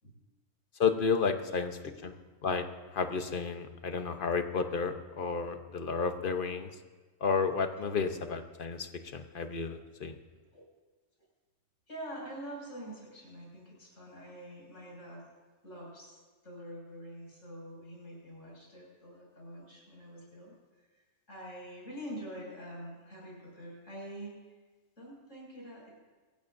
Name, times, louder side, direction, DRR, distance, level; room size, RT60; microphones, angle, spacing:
voice 1, 0.8-1.7 2.4-2.6 2.9-6.7 7.2-10.2, left 5 dB, 45° left, 7 dB, 1.0 m, -31 dB
voice 2, 11.9-15.3 15.6-24.3 25.0-25.9, equal, 75° left, -4 dB, 6.6 m, -46 dB
26.5 x 15.0 x 2.6 m, 1.3 s
omnidirectional pair, 1.3 m